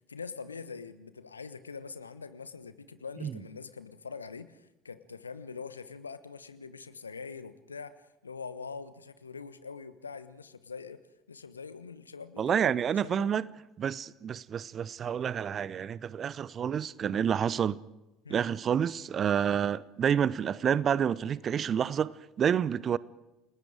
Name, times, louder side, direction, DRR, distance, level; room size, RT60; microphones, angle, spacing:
voice 1, 0.1-11.0 11.3-12.7 13.0-13.4 18.2-18.4, left 5 dB, 85° left, 1.1 m, -43 dB
voice 2, 12.4-13.5 13.8-17.8 18.3-23.0, right 8 dB, 40° right, 0.8 m, -29 dB
29.5 x 20.0 x 5.0 m
figure-of-eight pair, 65°, 0 cm